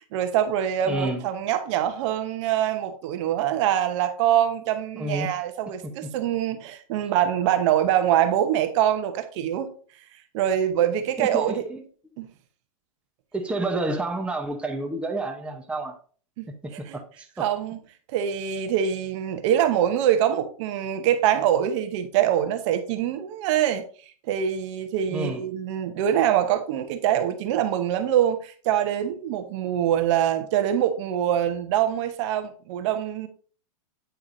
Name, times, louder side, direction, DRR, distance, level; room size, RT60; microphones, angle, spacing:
voice 1, 0.1-9.7 10.3-11.6 12.2-12.3 16.4-16.5 16.9-17.0 17.4-17.8 18.1-23.8 24.3-33.3, right 10 dB, 55° right, 1.0 m, -24 dB
voice 2, 0.9-1.2 4.9-5.3 5.8-6.1 11.2-11.8 13.3-16.0 16.5-17.4 25.1-25.4, right 2 dB, 5° right, 0.9 m, -30 dB
9.0 x 4.7 x 2.7 m
hypercardioid pair, 125°, 19 cm